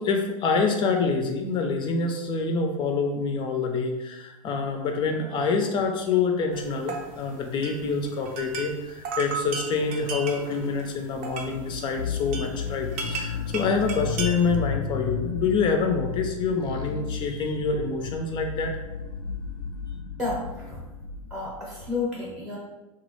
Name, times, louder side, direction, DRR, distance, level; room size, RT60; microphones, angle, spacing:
voice 1, 0.0-18.7, left 4 dB, 25° left, 3 dB, 0.3 m, -26 dB
sound 1, 6.5-14.6, right 4 dB, 40° right, 0.6 m, -36 dB
sound 2, 11.4-21.9, left 6 dB, 85° left, 0.4 m, -34 dB
voice 2, 20.2-20.8 21.3-22.6, left 3 dB, ahead, -5 dB, 0.7 m, -31 dB
2.9 x 2.3 x 3.0 m, 1.1 s
hypercardioid pair, 115°, 18 cm